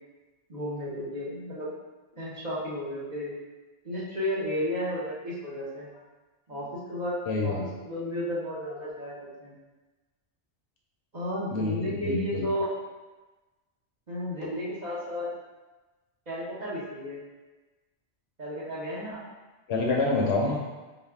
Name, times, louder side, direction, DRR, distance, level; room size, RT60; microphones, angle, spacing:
voice 1, 0.5-1.7 2.1-3.3 3.8-5.9 6.5-9.5 11.1-12.7 14.1-15.3 16.3-17.2 18.4-19.2, equal, 40° right, -8 dB, 1.0 m, -33 dB
voice 2, 7.3-7.6 11.5-12.5 19.7-20.6, left 3 dB, 70° left, -1 dB, 0.8 m, -27 dB
4.1 x 2.2 x 3.5 m, 1.2 s
omnidirectional pair, 1.2 m